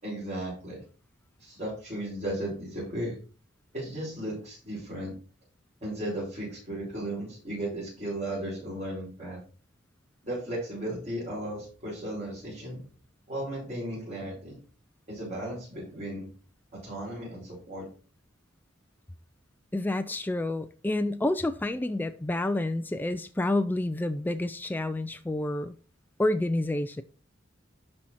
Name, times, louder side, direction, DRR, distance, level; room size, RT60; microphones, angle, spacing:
voice 1, 0.0-0.8 1.4-3.1 3.7-5.2 5.8-9.4 10.3-12.8 13.3-14.6 15.1-16.3 16.7-17.9, right 1 dB, 40° right, 5.2 m, -35 dB
voice 2, 19.7-25.7 26.2-27.0, left 1 dB, 10° left, 0.4 m, -29 dB
12.0 x 4.3 x 4.4 m
head